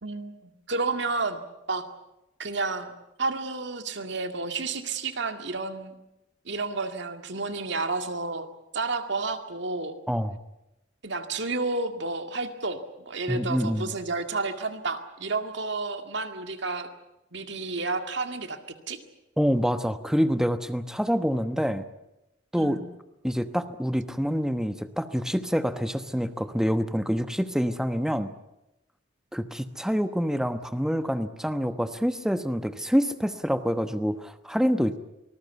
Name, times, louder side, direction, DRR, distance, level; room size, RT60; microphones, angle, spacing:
voice 1, 0.0-1.4 1.7-1.8 2.4-2.9 3.2-5.9 6.5-8.5 8.7-9.9 11.0-12.8 13.1-16.9 17.3-18.6 18.9-19.0 22.6-22.8, right 3 dB, 60° right, 7 dB, 2.1 m, -31 dB
voice 2, 10.1-10.4 13.3-13.9 19.4-21.9 22.5-22.8 23.2-28.3 29.3-35.0, equal, 5° right, 10 dB, 1.0 m, -26 dB
25.0 x 20.0 x 8.2 m, 0.92 s
head